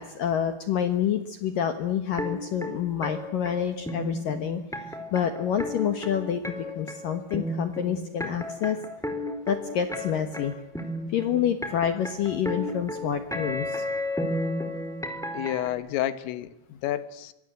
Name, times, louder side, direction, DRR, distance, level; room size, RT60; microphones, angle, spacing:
voice 1, 0.0-4.6 5.1-8.8 9.5-10.5 11.1-13.8, left 9 dB, 70° left, 9 dB, 2.1 m, -28 dB
sound 1, 2.2-15.7, left 1 dB, ahead, 2.9 m, -33 dB
voice 2, 15.3-17.3, left 13 dB, 85° left, 14 dB, 3.9 m, -30 dB
26.5 x 22.5 x 7.9 m, 0.95 s
omnidirectional pair, 5.7 m